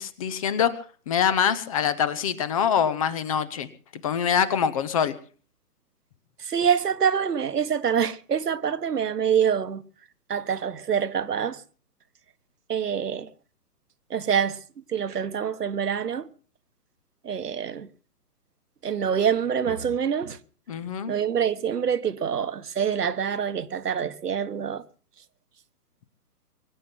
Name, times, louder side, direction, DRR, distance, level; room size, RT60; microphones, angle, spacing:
voice 1, 0.0-3.7 4.0-5.1 20.7-21.1, left 8 dB, 25° left, 0.8 m, -24 dB
voice 2, 6.4-9.8 10.3-11.6 12.7-13.3 14.1-14.6 14.9-16.3 17.2-17.9 18.8-20.4 21.1-24.8, right 7 dB, 80° right, 1.4 m, -26 dB
23.5 x 8.8 x 5.9 m
hypercardioid pair, 145°, 46 cm